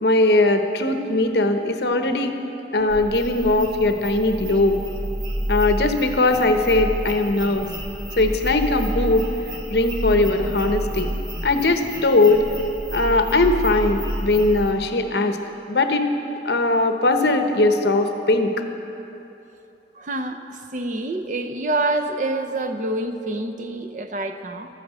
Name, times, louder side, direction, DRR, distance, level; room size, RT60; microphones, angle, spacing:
voice 1, 0.0-2.3 2.7-4.7 5.5-7.7 8.2-9.2 9.7-12.4 12.9-15.4 15.7-16.1 16.4-18.5, left 2 dB, 65° left, 6 dB, 0.9 m, -20 dB
sound 1, 2.9-14.7, equal, 25° right, 1.9 m, -30 dB
voice 2, 20.0-20.4 20.7-24.7, right 2 dB, 45° right, 8 dB, 0.7 m, -26 dB
12.5 x 9.4 x 8.1 m, 3.0 s
head